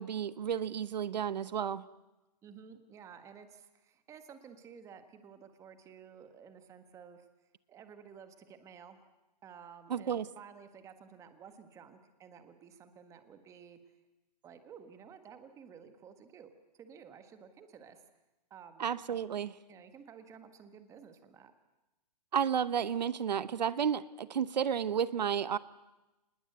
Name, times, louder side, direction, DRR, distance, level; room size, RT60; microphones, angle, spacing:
voice 1, 0.0-1.8 9.9-10.2 18.8-19.5 22.3-25.6, right 8 dB, 90° right, 17 dB, 0.9 m, -32 dB
voice 2, 2.4-7.3 7.7-9.0 9.4-13.8 14.4-18.0 18.5-18.9 19.7-21.5, right 7 dB, 15° right, 9 dB, 1.6 m, -53 dB
26.0 x 20.5 x 8.1 m, 1.0 s
hypercardioid pair, 155°, 21 cm